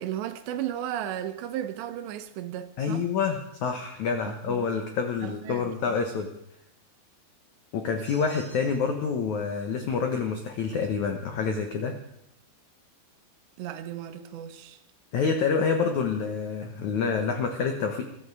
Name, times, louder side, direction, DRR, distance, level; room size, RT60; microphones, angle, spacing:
voice 1, 0.0-3.1 4.2-4.7 5.2-6.0 13.6-14.8, right 11 dB, 75° right, 3.0 m, -35 dB
voice 2, 2.8-6.3 7.7-12.0 15.1-18.0, left 5 dB, 80° left, 1.6 m, -27 dB
sound 1, 8.0-9.0, equal, 60° left, 6.6 m, -51 dB
22.0 x 13.0 x 4.8 m
omnidirectional pair, 5.3 m